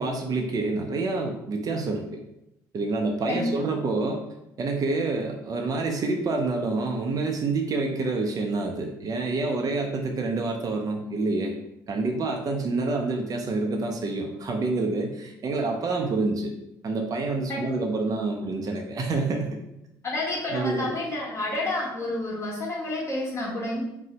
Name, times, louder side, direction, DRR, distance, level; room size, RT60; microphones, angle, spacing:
voice 1, 0.0-2.2 2.7-4.2 4.6-11.6 11.9-16.5 16.8-19.6 20.5-20.9, right 3 dB, 40° right, 2 dB, 0.5 m, -27 dB
voice 2, 3.3-3.7 17.5-17.7 20.0-23.8, left 2 dB, 30° left, -4 dB, 1.3 m, -29 dB
2.6 x 2.0 x 3.8 m, 0.84 s
hypercardioid pair, 60°, 9 cm